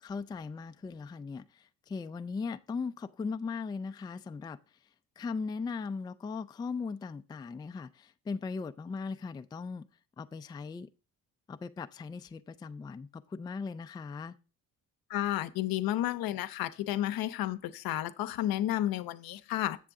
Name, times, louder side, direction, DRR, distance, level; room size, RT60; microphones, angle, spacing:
voice 1, 0.0-4.6 5.2-9.9 10.2-10.9 11.5-14.3, left 4 dB, 10° left, 0.3 m, -38 dB
voice 2, 15.1-19.8, left 13 dB, 70° left, 0.7 m, -32 dB
7.6 x 6.8 x 3.6 m
supercardioid pair, 75°, 37 cm